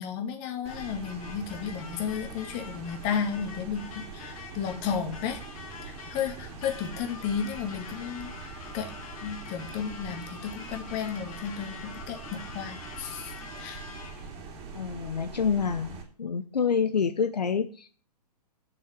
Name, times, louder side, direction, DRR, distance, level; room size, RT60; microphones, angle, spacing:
voice 1, 0.0-5.4 5.8-8.9 9.2-13.8, left 7 dB, 35° left, 5 dB, 2.2 m, -33 dB
sound 1, 0.6-16.0, right 4 dB, 30° right, 2.6 m, -43 dB
sound 2, 0.7-14.4, left 5 dB, 55° left, 2.0 m, -46 dB
voice 2, 14.7-17.9, left 6 dB, 80° left, 9 dB, 0.9 m, -27 dB
7.4 x 6.5 x 8.0 m, 0.42 s
hypercardioid pair, 120°, 21 cm